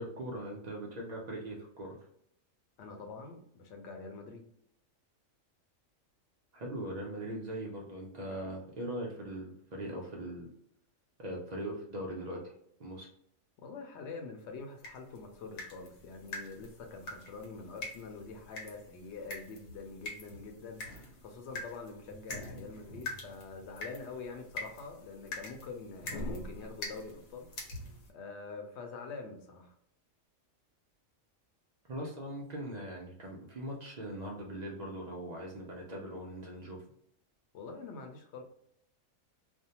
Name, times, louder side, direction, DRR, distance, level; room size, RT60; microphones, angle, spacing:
voice 1, 0.0-2.0 6.5-10.5 11.2-12.4 12.8-13.1 31.9-36.8, right 1 dB, 80° right, -2 dB, 0.3 m, -40 dB
voice 2, 2.8-4.5 13.6-29.7 37.5-38.4, left 4 dB, 65° left, 3 dB, 0.8 m, -45 dB
sound 1, 14.8-28.1, left 2 dB, 90° left, 1.2 m, -45 dB
2.5 x 2.1 x 2.7 m, 0.69 s
omnidirectional pair, 1.4 m